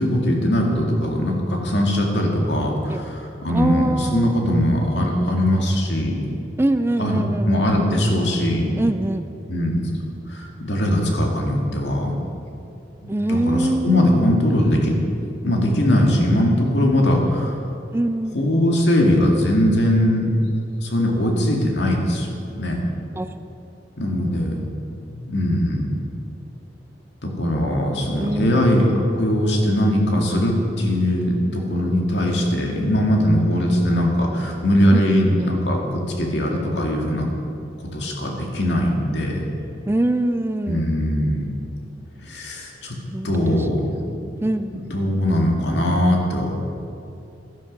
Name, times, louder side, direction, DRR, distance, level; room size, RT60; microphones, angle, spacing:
voice 1, 0.0-6.3 7.0-8.8 9.5-9.8 10.3-12.2 13.0-14.9 15.4-17.6 18.3-20.3 20.8-22.8 24.0-24.6 25.1-25.9 27.2-37.3 37.9-39.4 40.7-41.5 42.2-43.0 43.2-44.1 44.9-46.5, equal, 70° left, 0 dB, 2.1 m, -20 dB
voice 2, 3.5-4.4 6.6-7.7 8.8-9.2 13.1-14.3 17.9-18.4 23.2-23.4 28.2-28.7 34.9-35.5 39.9-40.9 43.1-44.1 44.4-44.8, right 1 dB, 15° right, 10 dB, 0.3 m, -24 dB
12.0 x 11.5 x 5.3 m, 2.8 s
head